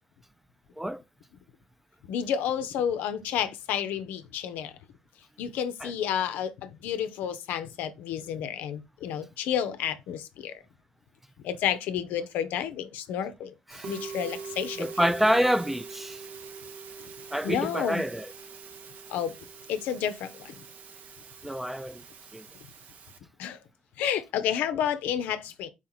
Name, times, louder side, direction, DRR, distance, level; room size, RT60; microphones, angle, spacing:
voice 1, 2.0-4.7 5.4-10.6 11.4-13.5 13.9-15.1 17.4-18.1 19.1-19.4 19.7-20.6 23.4-23.6 24.0-25.7, left 9 dB, 75° left, 0.5 m, -30 dB
Musical instrument, 13.7-23.2, right 5 dB, 70° right, 0.8 m, -43 dB
voice 2, 14.8-16.2 17.3-18.3 21.4-22.0 22.3-22.5, equal, 5° right, 0.3 m, -27 dB
4.3 x 2.9 x 3.9 m
supercardioid pair, 60°, 3 cm